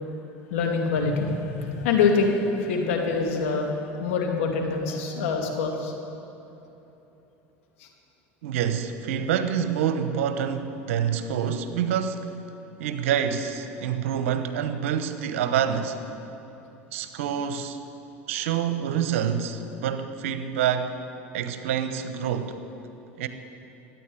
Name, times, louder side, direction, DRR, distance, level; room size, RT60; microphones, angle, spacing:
voice 1, 0.5-5.9 7.8-7.9, left 4 dB, 75° left, 1 dB, 2.4 m, -25 dB
voice 2, 8.4-12.3 12.8-16.0 16.9-17.8 18.3-20.9 21.3-22.6 23.2-23.3, right 8 dB, 75° right, 9 dB, 1.1 m, -27 dB
14.0 x 9.5 x 9.2 m, 3.0 s
hypercardioid pair, 85°, 7 cm